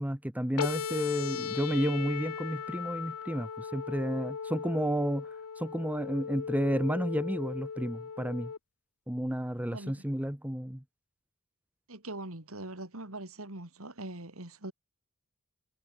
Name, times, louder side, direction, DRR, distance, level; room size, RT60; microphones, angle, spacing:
voice 1, 0.0-5.3 5.6-8.5 9.1-10.8, equal, 5° right, 1.1 m, -31 dB
sound 1, 0.6-8.6, left 6 dB, 75° left, 0.6 m, -37 dB
voice 2, 9.7-10.0 11.9-14.7, right 2 dB, 65° right, 3.7 m, -42 dB
head